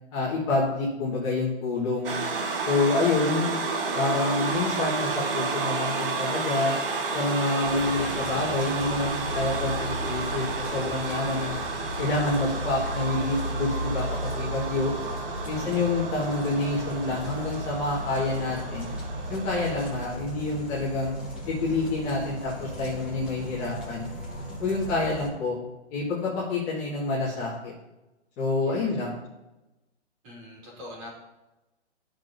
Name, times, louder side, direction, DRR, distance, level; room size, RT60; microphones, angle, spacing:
voice 1, 0.1-2.1 2.7-3.5 3.9-6.7 7.1-11.6 12.0-14.9 15.4-18.9 19.3-21.1 21.5-24.1 24.6-25.6 25.9-27.7 28.4-29.2, left 3 dB, 15° left, -9 dB, 1.7 m, -27 dB
sound 1, 2.0-20.1, right 4 dB, 50° right, 1.3 m, -31 dB
sound 2, 7.6-25.3, equal, 5° right, 1.4 m, -35 dB
voice 2, 15.5-16.0 28.6-29.0 30.2-31.1, left 1 dB, 30° right, -4 dB, 3.3 m, -44 dB
13.0 x 6.2 x 2.7 m, 1.0 s
hypercardioid pair, 170°, 35 cm